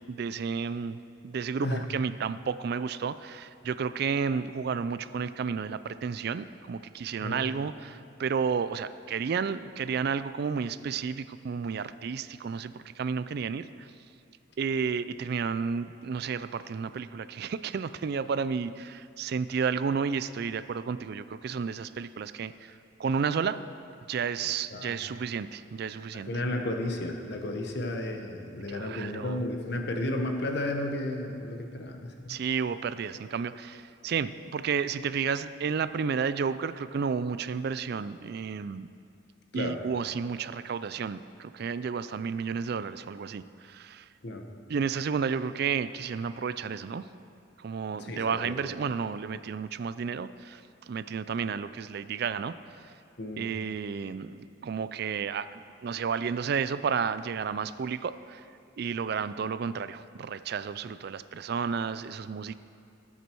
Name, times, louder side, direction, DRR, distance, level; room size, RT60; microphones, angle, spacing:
voice 1, 0.1-1.0 1.2-13.9 14.6-22.7 23.0-23.6 24.1-26.3 28.7-29.4 32.3-38.9 39.5-44.1 44.7-47.1 47.6-50.6 50.9-52.5 53.4-58.4 58.8-62.6, right 6 dB, 55° right, 14 dB, 0.4 m, -32 dB
voice 2, 24.7-25.1 26.1-32.4 39.5-39.8 44.2-44.4 48.0-48.8 53.2-53.5, left 1 dB, 60° left, 3 dB, 1.2 m, -33 dB
19.0 x 8.3 x 4.6 m, 2.5 s
head